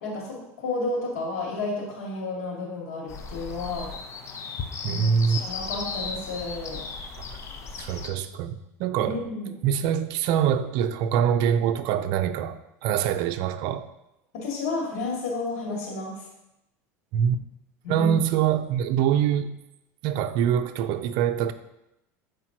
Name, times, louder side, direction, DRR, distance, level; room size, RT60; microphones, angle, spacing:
voice 1, 0.0-3.9 4.8-6.8 9.0-9.5 14.3-16.1 17.8-18.2, left 3 dB, 85° left, -2 dB, 2.2 m, -31 dB
sound 1, 3.1-8.1, left 5 dB, 35° left, 0.8 m, -36 dB
voice 2, 4.8-5.4 7.2-7.3 7.8-9.2 9.6-13.8 17.1-17.4 17.9-19.5 20.0-21.5, right 8 dB, 65° right, 10 dB, 0.5 m, -24 dB
7.5 x 4.9 x 2.9 m, 0.88 s
supercardioid pair, 115°, 8 cm